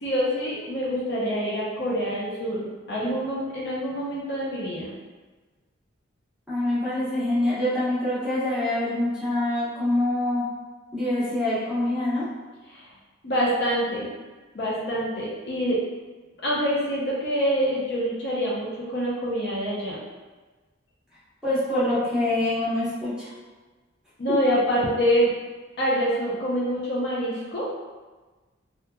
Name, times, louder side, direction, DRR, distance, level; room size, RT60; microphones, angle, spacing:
voice 1, 0.0-4.9 12.7-12.8 13.2-14.1 14.5-15.8 16.4-20.0 24.2-25.3 25.8-27.6, equal, 55° left, -6 dB, 0.6 m, -26 dB
voice 2, 6.5-10.4 10.9-12.3 21.4-23.3, left 1 dB, 5° right, -11 dB, 0.9 m, -25 dB
2.8 x 2.4 x 2.2 m, 1.3 s
head